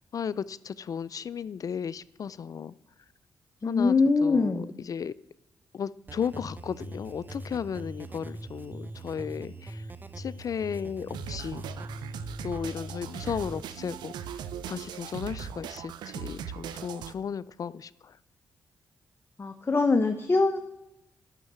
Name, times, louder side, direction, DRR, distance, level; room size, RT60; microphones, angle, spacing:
voice 1, 0.1-2.7 3.6-3.9 4.2-4.6 4.8-5.1 5.7-9.8 10.2-11.6 12.4-14.1 14.6-18.2, left 7 dB, 55° left, 0.4 m, -34 dB
voice 2, 3.6-4.7 19.4-20.6, left 3 dB, 35° left, 0.9 m, -23 dB
sound 1, 6.1-13.6, right 1 dB, 25° right, 0.9 m, -41 dB
sound 2, 11.1-17.1, right 8 dB, 90° right, 0.5 m, -39 dB
11.0 x 6.5 x 6.9 m
cardioid pair, 60°, 7 cm